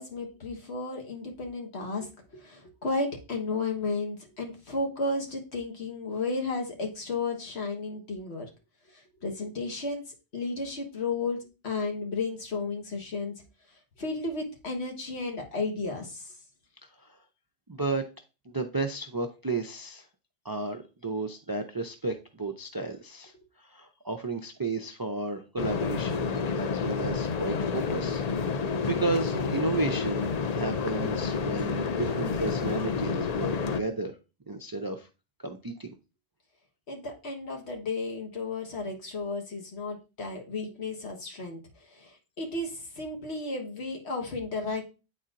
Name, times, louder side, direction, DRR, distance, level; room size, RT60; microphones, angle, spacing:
voice 1, 0.0-8.5 8.9-10.0 10.3-11.4 11.6-13.3 14.0-16.3 36.9-41.6 41.9-44.9, left 3 dB, 80° left, 2 dB, 1.6 m, -33 dB
voice 2, 17.7-18.1 18.5-20.0 20.4-23.3 23.6-34.1 34.5-35.1 35.4-35.9, right 3 dB, 35° right, 6 dB, 0.3 m, -33 dB
sound 1, 25.6-33.8, left 5 dB, 50° left, 0.5 m, -29 dB
9.0 x 4.2 x 2.5 m, 0.30 s
omnidirectional pair, 1.1 m